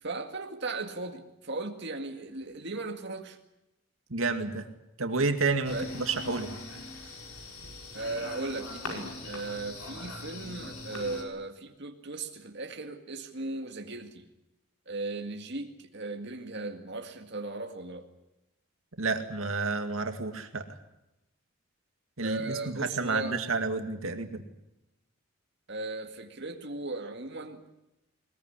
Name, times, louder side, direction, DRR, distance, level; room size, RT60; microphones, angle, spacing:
voice 1, 0.0-3.4 5.7-5.9 7.9-14.3 14.9-18.1 22.2-23.4 25.7-27.7, right 2 dB, 55° right, 3 dB, 2.0 m, -37 dB
voice 2, 4.1-4.7 5.0-6.5 19.0-20.6 22.2-24.4, right 3 dB, 75° right, 6 dB, 2.2 m, -30 dB
sound 1, 5.6-11.2, left 2 dB, 90° left, 5.5 m, -41 dB
21.5 x 21.0 x 10.0 m, 0.90 s
head